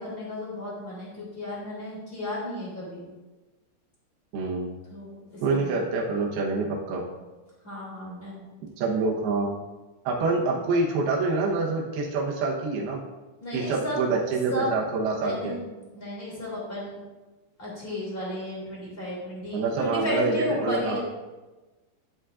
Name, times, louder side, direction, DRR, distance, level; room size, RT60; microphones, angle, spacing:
voice 1, 0.0-3.0 4.9-5.8 7.6-8.4 13.4-14.0 14.5-14.7 15.0-15.6 15.9-16.9 17.6-21.0, left 1 dB, 15° left, -6 dB, 2.0 m, -33 dB
voice 2, 4.3-4.7 5.4-7.0 8.8-9.6 10.0-13.0 13.5-15.6 19.5-21.0, right 3 dB, 70° right, -3 dB, 2.8 m, -26 dB
11.0 x 8.2 x 2.5 m, 1.2 s
omnidirectional pair, 5.1 m